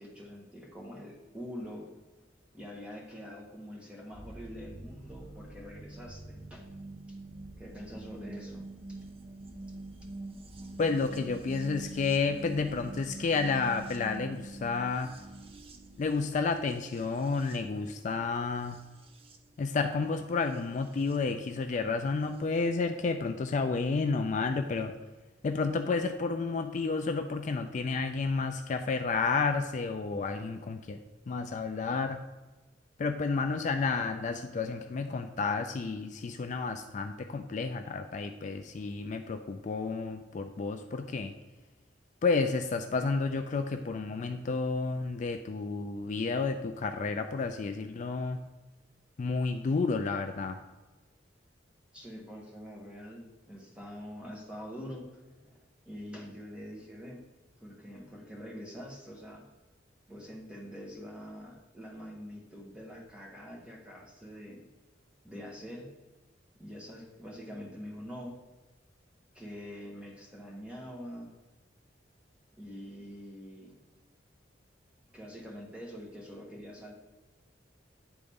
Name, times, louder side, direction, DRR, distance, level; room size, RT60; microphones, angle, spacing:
voice 1, 0.0-1.9 2.5-6.6 7.6-9.0 51.9-55.6 55.9-57.2 57.6-59.4 60.1-64.6 65.2-65.9 66.6-68.4 69.3-71.3 72.6-73.7 75.1-76.9, equal, 5° right, -2 dB, 1.4 m, -45 dB
sound 1, 4.1-21.2 22.3-22.4, right 2 dB, 30° right, 0.6 m, -46 dB
voice 2, 10.8-15.1 16.0-18.8 19.6-24.9 25.4-31.0 31.3-32.2 33.0-41.3 42.2-48.4 49.2-50.6, left 4 dB, 40° left, 6 dB, 0.3 m, -31 dB
9.8 x 3.9 x 3.6 m, 1.2 s
head